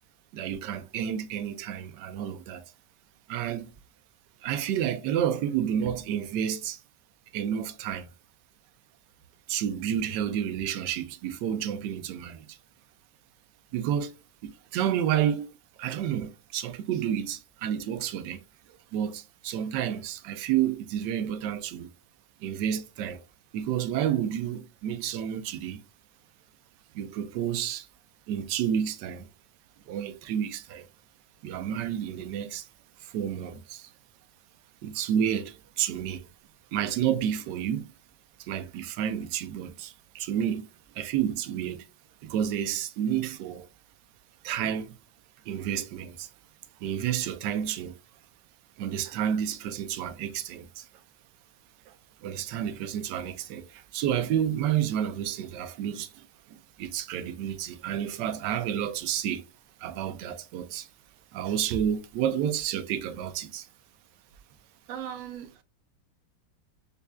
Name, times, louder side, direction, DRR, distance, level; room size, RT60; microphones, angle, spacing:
voice 1, 0.3-2.7 3.3-3.7 4.4-6.8 7.3-8.1 9.5-12.6 13.7-14.2 14.4-15.5 15.8-18.4 18.9-21.9 22.4-23.2 23.5-25.8 26.9-27.9 28.3-29.3 29.9-30.9 31.4-32.7 33.0-33.9 34.8-36.3 36.7-37.9 38.4-40.7 40.9-41.9 42.2-43.7 44.4-44.9 45.5-46.3 46.8-48.0 48.8-50.9 51.9-52.0 52.2-59.5 59.8-60.9 61.3-63.7, right 9 dB, 75° right, 1.1 m, -30 dB
voice 2, 64.9-65.6, right 9 dB, 90° right, 0.6 m, -38 dB
5.3 x 2.4 x 2.2 m
omnidirectional pair, 2.1 m